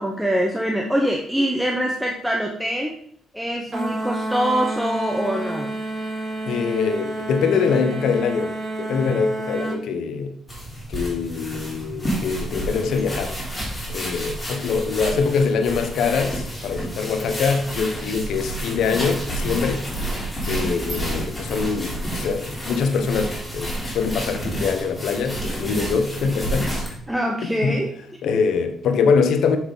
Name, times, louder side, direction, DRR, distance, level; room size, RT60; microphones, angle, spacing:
voice 1, 0.0-2.9 3.3-5.8 27.1-27.9 28.2-28.3, equal, 5° right, 1.0 m, -24 dB
sound 1, 3.7-9.8, right 2 dB, 35° right, 2.9 m, -29 dB
voice 2, 6.5-10.4 10.9-13.4 13.9-19.9 20.1-26.8 27.4-27.8 28.2-29.6, left 5 dB, 75° left, 0.9 m, -23 dB
sound 2, 10.5-27.0, right 1 dB, 10° left, 3.2 m, -30 dB
7.1 x 6.0 x 3.9 m
cardioid pair, 90°, 0 cm